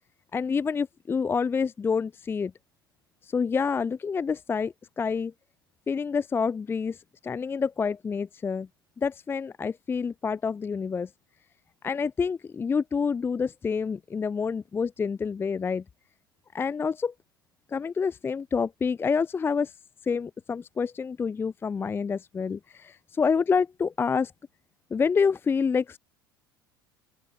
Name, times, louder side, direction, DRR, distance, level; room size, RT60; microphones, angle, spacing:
voice 1, 0.3-2.5 3.2-5.3 5.9-8.7 9.0-11.1 11.8-15.8 16.5-17.1 17.7-19.7 20.0-24.3 24.9-26.0, left 5 dB, 20° left, 0.6 m, -28 dB
open air
figure-of-eight pair, 70°, 12 cm